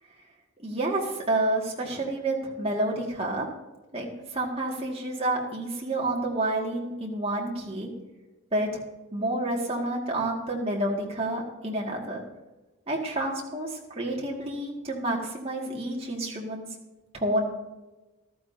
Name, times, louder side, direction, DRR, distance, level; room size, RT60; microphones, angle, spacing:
voice 1, 0.6-3.5 3.9-7.9 8.5-8.8 9.1-12.2 12.9-16.6 17.1-17.4, right 1 dB, 25° right, -2 dB, 2.0 m, -29 dB
14.5 x 12.5 x 2.8 m, 1.1 s
head